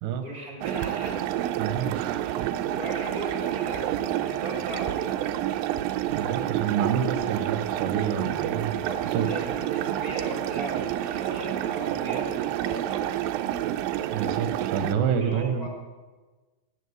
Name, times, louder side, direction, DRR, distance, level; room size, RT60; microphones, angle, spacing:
voice 1, 0.2-1.2 2.6-5.3 8.8-12.3 12.6-13.1 15.2-15.7, right 1 dB, 35° right, 0 dB, 1.5 m, -37 dB
sound 1, 0.6-14.9, right 12 dB, 85° right, 2.1 m, -29 dB
voice 2, 1.6-2.5 6.1-8.8 9.1-9.4 14.1-15.7, right 8 dB, 65° right, 9 dB, 2.4 m, -28 dB
17.0 x 8.7 x 8.1 m, 1.3 s
omnidirectional pair, 4.7 m